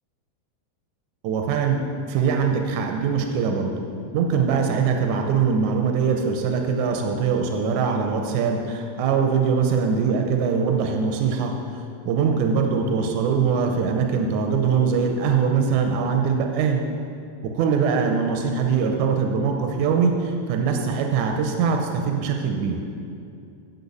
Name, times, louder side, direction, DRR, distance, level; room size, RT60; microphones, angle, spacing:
voice 1, 1.2-1.8 2.1-3.7 4.1-16.8 17.5-22.8, right 6 dB, 80° right, 3 dB, 2.1 m, -22 dB
8.1 x 7.1 x 8.3 m, 2.6 s
omnidirectional pair, 3.4 m